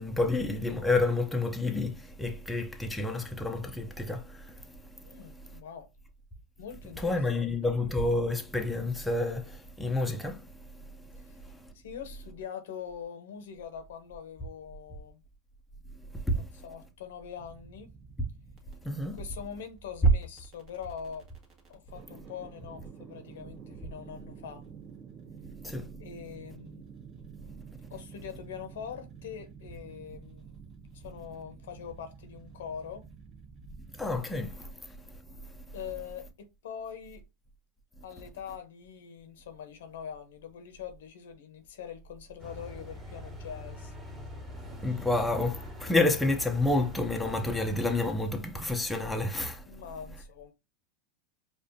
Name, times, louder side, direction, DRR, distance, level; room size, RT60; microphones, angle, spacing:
voice 1, 0.0-5.5 7.0-11.7 16.0-16.6 18.8-19.2 25.6-25.9 34.0-35.6 44.8-49.8, left 2 dB, 5° left, 0.7 m, -30 dB
voice 2, 5.0-5.9 6.6-7.5 11.2-11.4 11.7-15.2 16.3-17.9 19.0-21.3 21.7-24.6 26.0-26.8 27.9-30.4 30.9-33.0 35.7-37.2 38.0-43.9 49.7-50.5, left 8 dB, 80° left, 0.9 m, -43 dB
sound 1, 17.4-34.2, right 6 dB, 35° right, 1.4 m, -50 dB
sound 2, 42.4-48.1, left 1 dB, 15° right, 1.6 m, -43 dB
4.8 x 2.4 x 2.7 m
hypercardioid pair, 115°, 0 cm